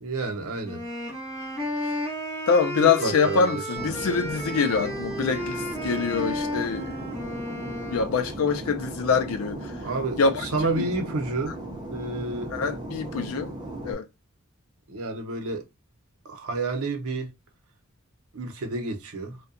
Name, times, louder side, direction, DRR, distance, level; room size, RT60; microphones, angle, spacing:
voice 1, 0.0-0.9 2.8-3.9 9.8-11.6 11.9-12.6 14.9-15.7 16.2-17.3 18.3-19.4, right 3 dB, 85° right, 0.7 m, -30 dB
sound 1, 0.6-8.1, equal, 15° left, 1.3 m, -33 dB
voice 2, 2.5-7.1 7.9-9.8 10.2-10.5 10.7-10.9 12.5-13.5 13.8-14.1, left 5 dB, 80° left, 0.4 m, -25 dB
Fixed-wing aircraft airplane, 3.8-13.9, right 1 dB, 20° right, 0.5 m, -37 dB
2.7 x 2.2 x 2.4 m
head